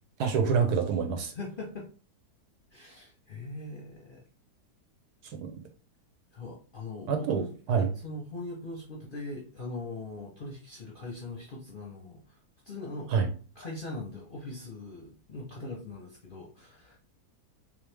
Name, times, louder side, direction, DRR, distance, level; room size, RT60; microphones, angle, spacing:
voice 1, 0.2-1.3 5.4-5.5 7.1-7.4 7.7-7.9 13.1-13.3, right 6 dB, 70° right, 5 dB, 1.3 m, -26 dB
voice 2, 1.3-1.9 2.7-4.2 6.3-12.4 12.6-13.1 13.6-17.0, left 2 dB, 45° left, -3 dB, 0.7 m, -41 dB
3.4 x 3.1 x 3.3 m, 0.38 s
omnidirectional pair, 1.8 m